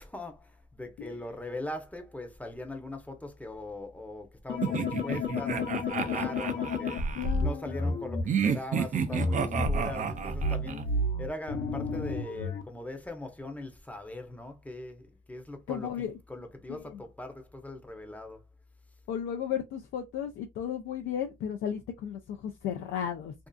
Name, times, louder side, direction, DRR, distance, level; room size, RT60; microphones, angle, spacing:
voice 1, 0.0-18.4, left 2 dB, 5° left, 0.7 m, -41 dB
sound 1, 4.5-8.2 9.1-12.6, left 2 dB, 65° left, 0.9 m, -31 dB
sound 2, 4.6-7.3 8.3-10.9, right 6 dB, 40° right, 0.4 m, -31 dB
voice 2, 7.1-7.6 11.6-12.0 15.7-16.1 16.7-17.0 19.1-23.3, left 9 dB, 85° left, 0.5 m, -34 dB
2.6 x 2.4 x 2.2 m
cardioid pair, 90°, 20 cm